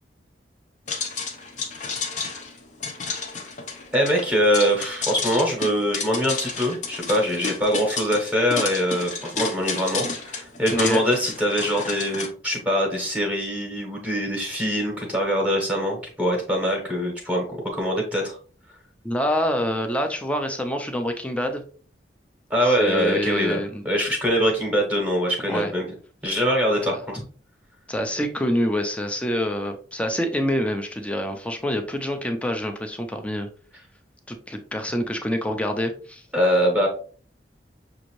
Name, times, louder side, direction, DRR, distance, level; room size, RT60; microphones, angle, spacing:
sound 1, 0.9-12.3, left 4 dB, 45° left, 0.7 m, -31 dB
voice 1, 3.9-18.4 22.5-25.9 26.2-27.2 36.3-36.9, equal, 10° right, 0 dB, 1.0 m, -23 dB
voice 2, 10.7-11.0 19.0-21.6 22.6-23.8 25.4-25.7 26.8-27.2 27.9-33.5 34.3-36.2, equal, 5° left, 5 dB, 0.5 m, -26 dB
6.1 x 2.6 x 3.1 m, 0.42 s
head